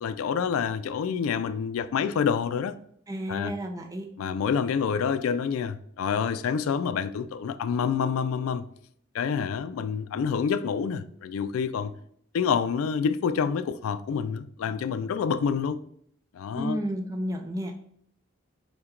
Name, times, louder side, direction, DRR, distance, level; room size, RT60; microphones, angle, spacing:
voice 1, 0.0-2.7 3.3-3.5 4.2-8.7 9.1-11.9 12.3-15.8 16.3-16.8, left 6 dB, 90° left, 0.3 m, -27 dB
voice 2, 3.1-4.1 16.5-17.8, equal, 15° right, 0.5 m, -32 dB
5.6 x 2.2 x 3.7 m
head